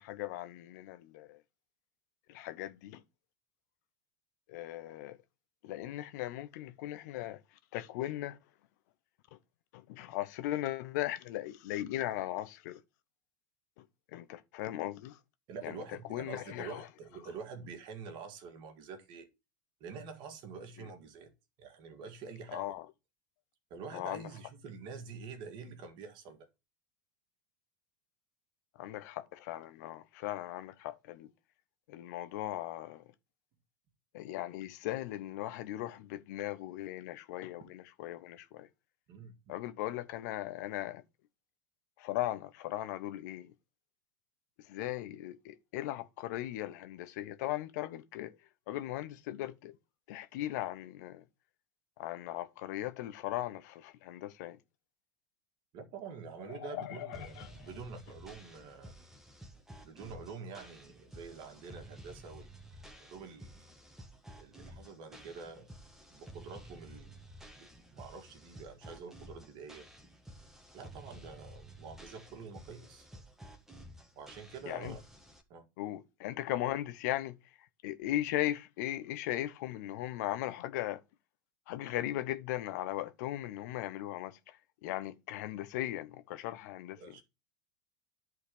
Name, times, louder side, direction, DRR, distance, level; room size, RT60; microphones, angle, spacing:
voice 1, 0.0-1.4 2.3-3.0 4.5-5.2 5.6-8.4 9.3-9.4 9.7-12.8 13.8-15.2 15.6-15.8 16.1-16.9 20.8-20.9 22.5-22.9 23.9-24.3 28.7-31.3 31.9-33.0 34.1-38.7 39.5-41.0 42.0-43.5 44.6-48.4 48.7-49.8 50.1-51.2 52.0-54.6 56.4-57.7 74.7-75.0 75.8-81.0 81.7-87.2, left 14 dB, 60° left, 0.8 m, -38 dB
voice 2, 15.5-19.3 19.8-21.3 21.6-22.7 23.7-26.5 39.1-39.5 55.7-58.9 59.8-63.7 64.4-65.7 66.1-67.2 67.6-69.9 70.7-73.1 74.2-75.0 75.5-75.7 87.0-87.2, right 5 dB, 50° right, 1.9 m, -47 dB
sound 1, 57.1-75.4, right 1 dB, 5° right, 1.4 m, -52 dB
10.5 x 4.1 x 4.9 m
figure-of-eight pair, 80°, 11 cm